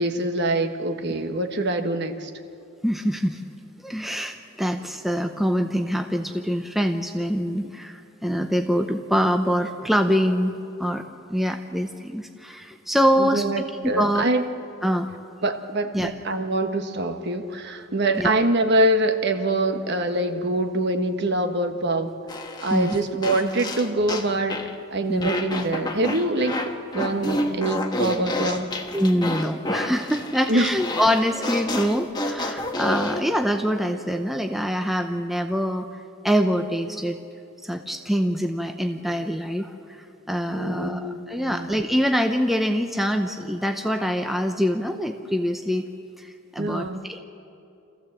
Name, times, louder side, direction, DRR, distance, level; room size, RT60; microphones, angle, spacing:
voice 1, 0.0-2.3 13.2-14.4 15.4-22.1 22.6-24.6 24.9-26.5 26.9-28.7 30.5-30.7 40.6-41.7 46.6-47.0, right 1 dB, 50° right, 7 dB, 1.3 m, -24 dB
voice 2, 2.8-3.4 3.8-10.5 10.8-11.0 11.3-13.6 14.0-14.2 14.8-15.1 15.9-16.1 18.2-18.3 22.7-23.0 25.1-25.3 28.9-35.9 36.2-37.2 37.6-45.9 46.2-47.2, equal, ahead, 5 dB, 0.7 m, -24 dB
sound 1, 22.3-24.7 25.2-33.2, left 2 dB, 20° left, 1.2 m, -29 dB
27.5 x 15.0 x 7.7 m, 2.6 s
head